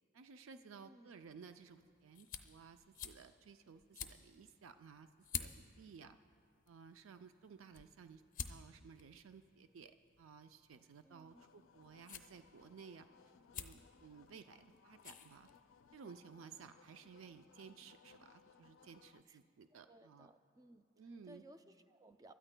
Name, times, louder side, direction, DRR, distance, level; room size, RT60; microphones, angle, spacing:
voice 1, 0.1-5.1 5.3-6.2 6.7-13.1 13.5-15.5 15.9-20.3 21.0-21.4, right 6 dB, 85° right, 9 dB, 0.4 m, -57 dB
voice 2, 0.7-1.2 11.0-11.4 19.3-19.4 19.9-20.9 21.2-22.3, right 1 dB, 20° right, 9 dB, 0.4 m, -61 dB
sound 1, 1.2-16.0, left 7 dB, 40° left, 0.6 m, -52 dB
sound 2, 11.3-19.2, left 6 dB, 85° left, 0.4 m, -66 dB
28.5 x 13.0 x 2.2 m, 2.3 s
head